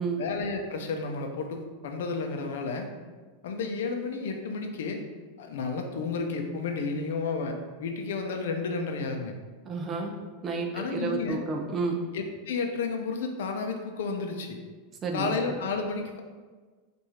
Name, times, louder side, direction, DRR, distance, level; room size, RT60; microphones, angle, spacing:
voice 1, 0.2-2.9 3.4-5.0 5.4-9.4 10.7-11.4 12.1-14.6 15.1-16.2, left 4 dB, 80° left, 4 dB, 0.7 m, -32 dB
voice 2, 9.7-10.2 10.4-12.1 15.0-15.4, right 4 dB, 25° right, 2 dB, 0.6 m, -30 dB
4.7 x 2.6 x 4.3 m, 1.4 s
supercardioid pair, 150°, 0 cm